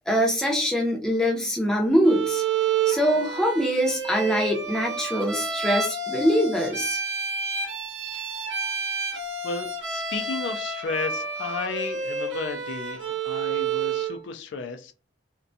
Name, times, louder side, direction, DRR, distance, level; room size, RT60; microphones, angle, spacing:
voice 1, 0.1-2.4 2.9-7.0, equal, 5° left, -1 dB, 0.5 m, -23 dB
Bowed string instrument, 2.0-14.2, right 5 dB, 85° right, 0.7 m, -29 dB
voice 2, 8.1-8.4 9.4-14.9, left 4 dB, 75° left, 6 dB, 0.4 m, -33 dB
2.5 x 2.2 x 2.6 m, 0.34 s
head